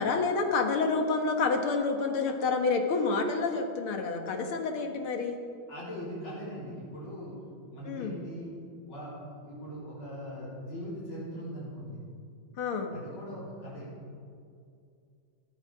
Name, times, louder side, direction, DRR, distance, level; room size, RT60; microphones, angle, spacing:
voice 1, 0.0-5.4 7.9-8.2 12.6-12.9, left 4 dB, 90° left, 4 dB, 2.3 m, -28 dB
voice 2, 5.7-7.4 7.7-8.5 8.9-12.0 12.9-13.9, equal, 70° left, -8 dB, 4.7 m, -40 dB
15.5 x 14.0 x 4.8 m, 2.3 s
omnidirectional pair, 2.3 m